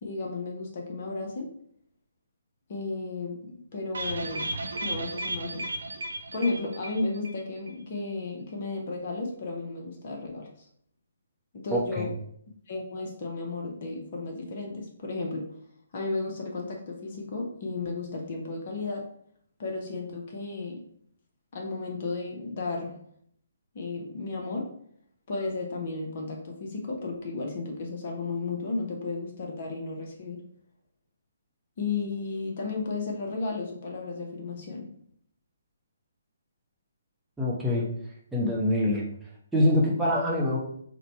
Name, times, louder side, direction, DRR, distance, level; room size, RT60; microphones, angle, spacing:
voice 1, 0.0-1.5 2.7-4.5 4.8-5.6 6.3-10.7 11.5-12.1 12.7-15.6 15.9-19.1 19.6-20.8 21.5-22.9 23.7-24.7 25.3-30.4 31.8-34.9, left 3 dB, 40° left, 1 dB, 0.8 m, -33 dB
sound 1, 3.9-7.4 7.7-7.8 8.1-8.2, right 2 dB, 65° right, 0.7 m, -34 dB
voice 2, 11.7-12.1 37.4-37.9 38.3-39.0 39.5-40.6, left 1 dB, 5° right, -5 dB, 0.8 m, -24 dB
3.9 x 2.2 x 4.3 m, 0.66 s
figure-of-eight pair, 135°, 0 cm